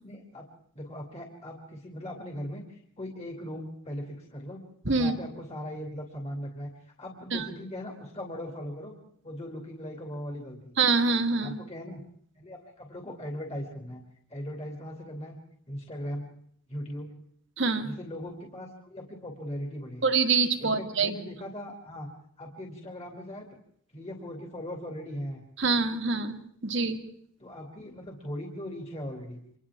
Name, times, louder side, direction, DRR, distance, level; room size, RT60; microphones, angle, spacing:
voice 1, 0.0-0.5 0.7-4.6 5.0-8.9 9.2-10.7 11.4-12.0 12.4-15.4 15.7-16.3 16.7-17.1 17.8-20.0 20.6-22.1 22.4-23.5 23.9-25.4 27.4-29.4, equal, 30° left, 1 dB, 2.6 m, -39 dB
voice 2, 10.8-11.6 17.6-17.9 20.0-21.1 25.6-27.0, right 4 dB, 55° right, 6 dB, 1.8 m, -25 dB
29.5 x 25.5 x 3.6 m, 0.65 s
head